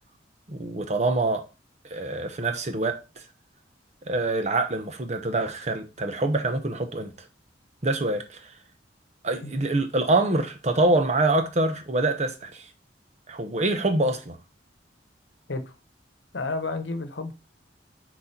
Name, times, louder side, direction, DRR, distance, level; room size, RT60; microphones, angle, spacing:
voice 1, 0.5-1.4 1.8-3.2 4.0-7.3 7.8-8.5 9.2-12.7 13.3-14.4, right 2 dB, 40° right, 0.9 m, -25 dB
voice 2, 16.3-17.3, left 3 dB, 80° left, 1.0 m, -31 dB
6.3 x 4.2 x 4.5 m
head